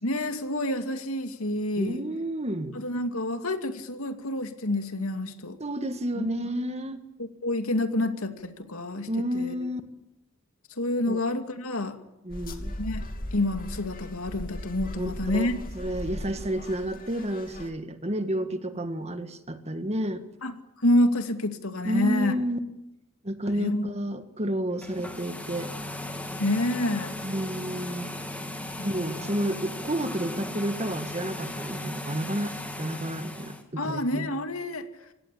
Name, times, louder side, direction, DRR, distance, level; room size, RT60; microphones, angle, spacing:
voice 1, 0.0-2.0 2.7-5.6 6.2-6.3 7.2-9.1 9.3-9.5 10.8-12.0 12.8-13.0 13.3-15.6 20.4-20.5 20.8-22.3 23.5-23.9 26.4-27.2 28.8-29.3 33.8-34.8, left 1 dB, 90° left, 7 dB, 2.6 m, -28 dB
voice 2, 1.8-2.8 5.6-7.0 9.1-9.8 11.1-11.2 12.2-12.7 15.0-20.2 21.8-22.6 23.2-25.7 27.2-28.1 28.8-34.3, equal, 30° right, 9 dB, 1.8 m, -31 dB
sound 1, 12.3-17.7, left 1 dB, 45° left, 2.9 m, -38 dB
sound 2, 24.7-33.6, left 1 dB, 5° left, 2.8 m, -37 dB
25.5 x 17.5 x 8.6 m, 0.89 s
head